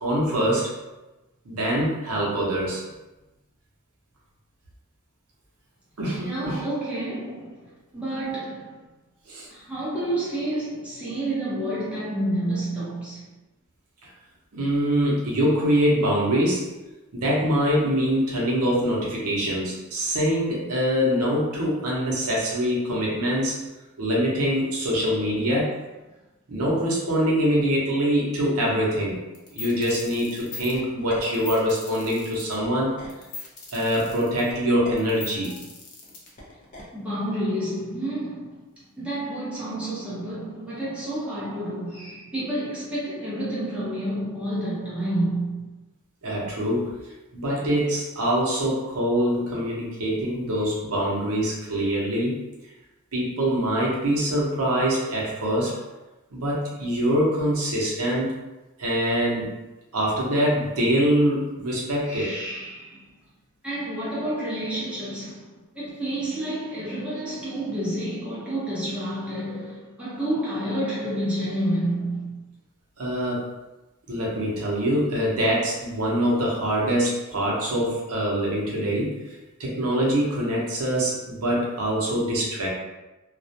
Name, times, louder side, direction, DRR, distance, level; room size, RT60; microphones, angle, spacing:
voice 1, 0.0-0.7 1.5-2.8 6.0-6.6 9.3-9.5 14.5-16.6 17.1-23.6 24.0-25.7 26.5-29.2 29.5-33.0 33.7-35.5 46.2-46.9 47.3-52.4 53.1-55.8 56.3-58.3 58.8-59.5 59.9-62.3 73.0-73.5 74.1-79.1 79.6-82.7, equal, 75° right, 0.7 m, -24 dB
voice 2, 6.2-8.8 9.5-13.2 36.9-38.5 39.0-45.7 62.0-63.0 63.6-65.5 65.7-72.4, right 1 dB, 5° right, 0.7 m, -29 dB
sound 1, 29.3-36.8, left 3 dB, 35° left, 0.5 m, -40 dB
2.3 x 2.1 x 2.7 m
head